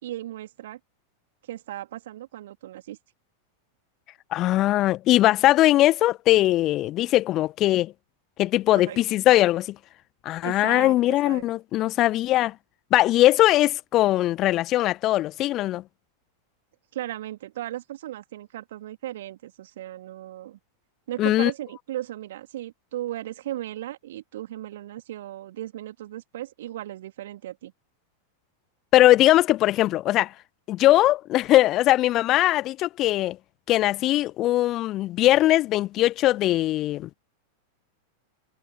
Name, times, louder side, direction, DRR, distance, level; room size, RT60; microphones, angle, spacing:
voice 1, 0.0-0.8 1.5-3.0 8.7-9.0 10.4-11.5 16.9-20.6 21.1-27.7, right 13 dB, 55° right, 3.3 m, -36 dB
voice 2, 4.3-7.9 8.4-9.7 10.2-12.5 12.9-15.8 21.2-21.5 28.9-30.3 30.7-33.4 33.7-37.1, left 15 dB, 35° left, 1.1 m, -20 dB
figure-of-eight pair, 90°, 0 cm